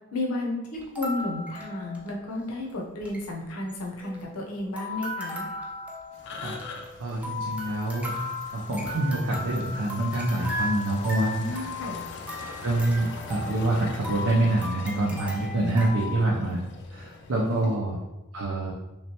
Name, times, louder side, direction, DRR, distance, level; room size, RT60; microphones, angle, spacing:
voice 1, 0.1-5.4 11.3-12.0 17.3-17.7, left 2 dB, 80° left, -1 dB, 0.8 m, -32 dB
sound 1, 0.7-2.4 2.7-2.8 3.0-3.2 3.7-4.5 4.8-16.2, left 2 dB, 5° right, 0.4 m, -36 dB
sound 2, 6.1-17.8, left 3 dB, 55° left, 0.4 m, -42 dB
voice 2, 7.0-8.1 8.5-11.9 12.6-16.6 16.9-18.0 18.3-18.7, right 2 dB, 75° right, -4 dB, 0.6 m, -26 dB
3.2 x 3.2 x 2.9 m, 1.0 s
head